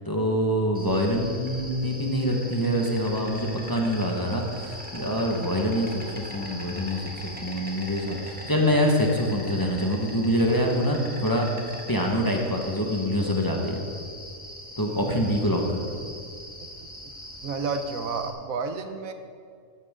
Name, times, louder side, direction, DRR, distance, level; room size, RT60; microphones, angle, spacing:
voice 1, 0.0-11.5 11.9-13.8 14.8-16.0, equal, 15° left, -1 dB, 1.3 m, -25 dB
Insect, 0.7-18.3, equal, 5° right, 1.5 m, -41 dB
voice 2, 17.4-19.1, right 4 dB, 75° right, 8 dB, 1.2 m, -30 dB
14.5 x 12.0 x 3.7 m, 2.2 s
omnidirectional pair, 1.5 m